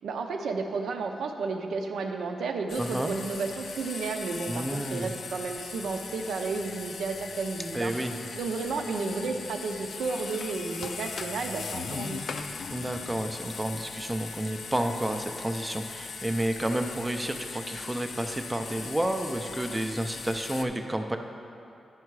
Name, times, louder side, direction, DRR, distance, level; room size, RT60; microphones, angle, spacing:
voice 1, 0.0-7.9 8.3-12.5, right 4 dB, 85° right, 4 dB, 0.6 m, -32 dB
sound 1, 2.7-20.6, left 5 dB, 60° left, 0.4 m, -39 dB
voice 2, 2.8-3.1 4.5-5.1 7.7-8.1 12.7-21.2, right 1 dB, 10° right, 5 dB, 0.4 m, -30 dB
9.6 x 5.7 x 4.7 m, 2.6 s
wide cardioid pair, 130°, 0 cm